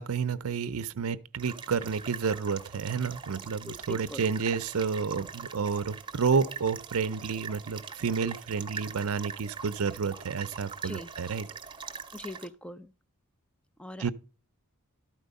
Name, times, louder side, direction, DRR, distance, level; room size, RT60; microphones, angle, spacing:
voice 1, 0.0-11.5 14.0-14.1, right 5 dB, 65° right, 0.6 m, -30 dB
sound 1, 1.4-12.5, right 6 dB, 20° right, 0.8 m, -43 dB
voice 2, 3.7-4.2 10.8-11.1 12.1-12.9 13.8-14.1, left 2 dB, 5° left, 0.4 m, -41 dB
12.0 x 4.6 x 5.2 m
head